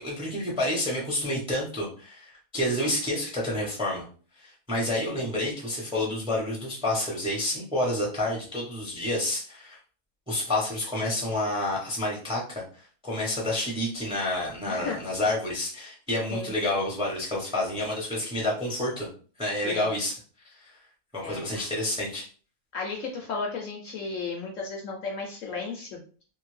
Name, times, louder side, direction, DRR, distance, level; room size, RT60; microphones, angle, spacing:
voice 1, 0.0-4.0 4.4-9.8 10.3-19.1 19.4-20.2 20.4-20.8 21.1-22.3, left 1 dB, 5° right, -3 dB, 0.6 m, -29 dB
voice 2, 14.7-15.0 16.3-16.5 19.6-19.9 21.2-21.6 22.7-26.0, left 4 dB, 70° left, 1 dB, 0.8 m, -34 dB
2.6 x 2.5 x 3.1 m, 0.40 s
omnidirectional pair, 1.7 m